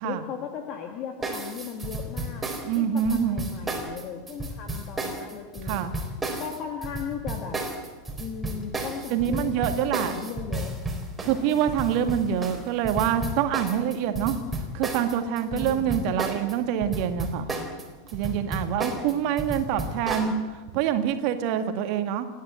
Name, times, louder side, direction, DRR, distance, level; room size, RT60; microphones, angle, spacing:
voice 1, 0.0-2.5 2.7-5.9 6.4-7.6 8.2-9.5 9.8-10.8 11.2-11.8 15.4-16.1 18.8-19.3, left 7 dB, 35° left, 4 dB, 1.9 m, -37 dB
sound 1, 1.2-16.5 16.8-20.3, right 2 dB, 10° right, 4.0 m, -32 dB
voice 2, 2.6-3.4 5.7-5.9 9.1-10.2 11.2-14.4 14.7-17.5 18.1-20.3 20.7-22.3, right 9 dB, 45° right, 7 dB, 2.0 m, -26 dB
30.0 x 10.5 x 8.4 m, 1.4 s
figure-of-eight pair, 90°, 0 cm